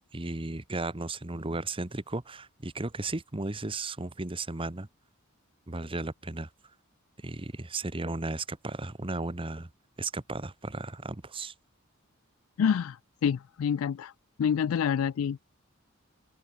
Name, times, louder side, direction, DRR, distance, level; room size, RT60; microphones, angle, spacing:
voice 1, 0.1-4.9 5.7-6.5 7.2-9.7 10.0-11.5, right 2 dB, 25° right, 1.2 m, -35 dB
voice 2, 12.6-14.1 14.4-15.5, left 7 dB, 80° left, 0.3 m, -27 dB
open air
head